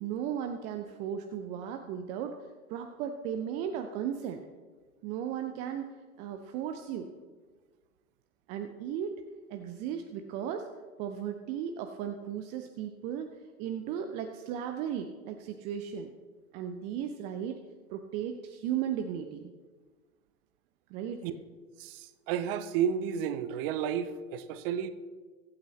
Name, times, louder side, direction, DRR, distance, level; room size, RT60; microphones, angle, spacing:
voice 1, 0.0-2.4 2.7-4.4 5.0-5.9 6.2-7.1 8.5-9.1 9.5-10.7 11.0-16.1 16.5-17.6 17.9-19.5 20.9-21.2, right 9 dB, 15° right, 6 dB, 0.4 m, -36 dB
voice 2, 21.8-24.9, right 8 dB, 40° right, 12 dB, 0.9 m, -32 dB
23.5 x 8.5 x 3.2 m, 1.4 s
figure-of-eight pair, 95°, 43 cm